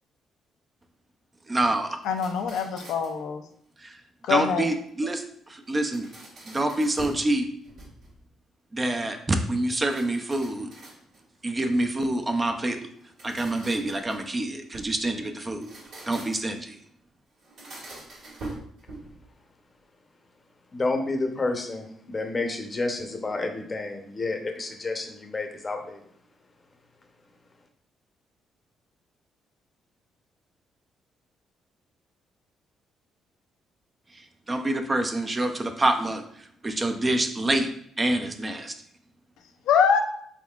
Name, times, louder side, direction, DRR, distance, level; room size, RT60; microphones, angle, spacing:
voice 1, 1.5-2.0 3.8-4.0 4.3-6.1 6.5-7.5 8.7-10.7 11.4-12.8 13.2-15.7 16.1-16.8 34.1-37.7 38.0-38.7, right 1 dB, 25° right, 6 dB, 0.5 m, -27 dB
sound 1, 2.0-3.2 5.7-7.3 7.6-8.3 9.7-11.4 12.9-15.0 15.5-16.6 17.4-19.2, right 2 dB, 70° right, 1.6 m, -43 dB
voice 2, 2.1-3.4 4.3-4.7 39.7-40.0, left 7 dB, 85° left, 5 dB, 0.4 m, -23 dB
voice 3, 20.7-26.0, left 3 dB, 30° left, 4 dB, 0.7 m, -30 dB
4.1 x 3.6 x 2.3 m, 0.66 s
cardioid pair, 90°, 0 cm